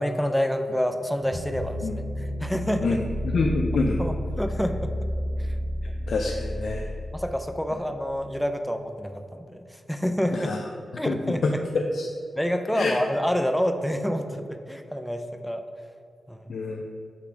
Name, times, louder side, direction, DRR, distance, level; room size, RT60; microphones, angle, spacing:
voice 1, 0.0-3.0 3.8-4.9 5.4-5.6 7.1-10.5 11.0-11.6 12.4-15.6 16.3-16.5, equal, 5° left, 7 dB, 0.4 m, -28 dB
sound 1, 1.2-8.4, equal, 55° left, 1.2 m, -31 dB
voice 2, 3.2-4.0 6.1-6.9 10.3-10.6 11.1-12.1 12.7-13.0 16.5-16.8, left 3 dB, 70° left, 2 dB, 0.4 m, -26 dB
5.8 x 4.1 x 5.7 m, 2.3 s
wide cardioid pair, 135°, 0 cm